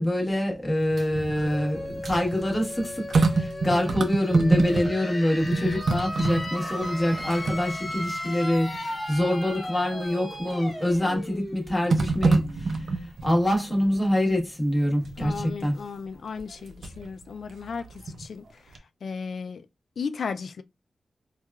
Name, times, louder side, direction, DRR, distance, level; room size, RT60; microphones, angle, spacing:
voice 1, 0.0-15.8, left 1 dB, 15° left, 1.2 m, -26 dB
sound 1, 0.8-5.1 5.4-8.2 8.7-8.8 10.5-11.0 11.9-13.4 15.0-15.5 16.4-17.1 17.5-18.5 18.7-18.8, right 3 dB, 75° right, 0.6 m, -27 dB
sound 2, 1.3-12.9, left 1 dB, 35° left, 0.9 m, -36 dB
voice 2, 15.2-18.6 19.0-19.7 20.0-20.6, left 5 dB, 80° left, 0.3 m, -35 dB
4.5 x 2.3 x 2.3 m
wide cardioid pair, 120°, 0 cm